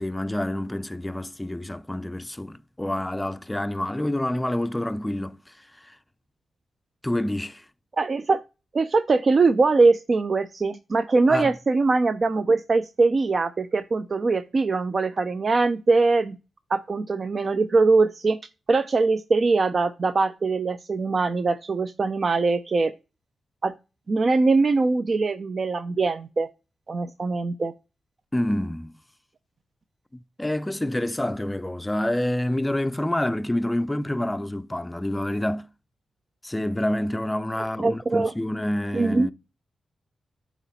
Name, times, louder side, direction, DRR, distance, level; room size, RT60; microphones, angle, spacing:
voice 1, 0.0-6.0 7.0-7.6 11.3-11.6 28.3-29.0 30.4-35.7 36.4-39.3, left 1 dB, 15° left, 0.4 m, -27 dB
voice 2, 8.0-8.4 8.7-16.4 16.7-18.4 18.7-22.9 23.6-23.7 24.1-26.5 26.9-27.7 37.8-38.3 38.9-39.3, right 3 dB, 50° right, 0.5 m, -22 dB
8.2 x 3.0 x 4.0 m
cardioid pair, 55°, 0 cm